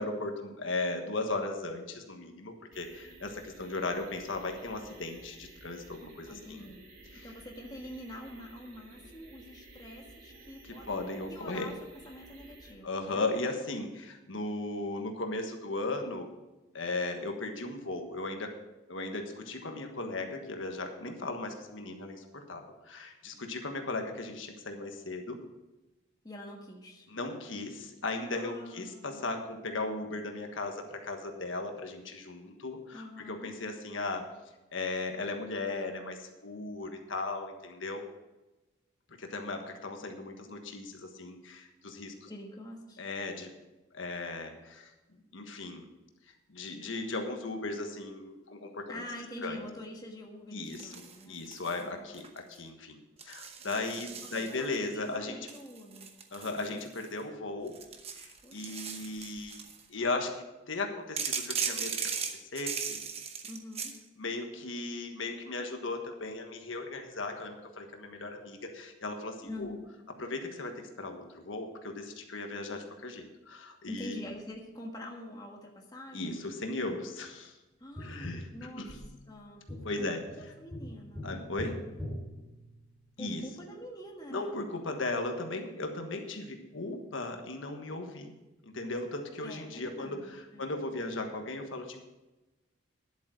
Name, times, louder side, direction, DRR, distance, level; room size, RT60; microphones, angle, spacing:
voice 1, 0.0-6.7 7.1-7.3 10.6-11.7 12.8-16.4 16.7-18.5 18.9-25.4 27.1-34.3 34.7-38.0 39.2-42.3 43.0-43.5 43.9-44.9 45.3-45.9 46.5-49.0 49.4-49.6 50.5-55.5 56.3-57.7 58.1-59.6 59.9-63.0 64.2-69.7 70.2-74.2 76.1-77.5 78.0-78.9 79.8-80.2 81.2-81.8 83.2-83.4 84.3-88.3 88.7-92.1, left 2 dB, 75° left, 4 dB, 1.4 m, -37 dB
sound 1, 2.7-12.7, right 2 dB, 50° right, 3.0 m, -54 dB
voice 2, 6.3-6.8 7.2-11.7 12.0-13.2 26.2-27.1 28.3-29.4 32.9-33.5 42.3-43.0 48.9-51.4 51.8-52.2 53.8-56.2 58.4-59.1 63.4-63.9 69.4-69.8 73.9-76.5 77.8-79.0 79.3-81.3 83.2-84.6 89.4-90.7, left 1 dB, 20° left, 0 dB, 1.5 m, -46 dB
sound 2, 50.7-51.8 52.1-52.6 53.2-54.8 55.5-57.2 57.7-59.8 61.2-64.0, right 6 dB, 30° right, 0.9 m, -38 dB
Tap, 78.0-83.2 85.8-85.9, left 1 dB, ahead, 3.0 m, -43 dB
11.0 x 8.2 x 6.3 m, 1.1 s
head